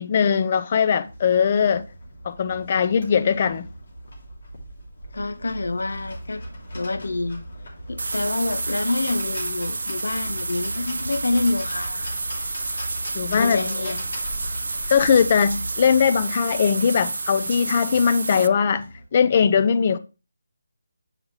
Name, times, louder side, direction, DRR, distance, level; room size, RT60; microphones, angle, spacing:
voice 1, 0.0-1.8 2.2-3.7 13.1-13.9 14.9-20.0, left 7 dB, 35° left, 0.5 m, -20 dB
sound 1, 1.0-19.0, equal, 55° left, 2.6 m, -39 dB
voice 2, 5.1-6.4 6.7-7.4 7.9-12.2 13.4-14.0, left 2 dB, 75° left, 0.7 m, -27 dB
sound 2, 8.0-18.5, right 3 dB, 70° right, 0.4 m, -30 dB
8.2 x 5.0 x 3.1 m
figure-of-eight pair, 165°, 0 cm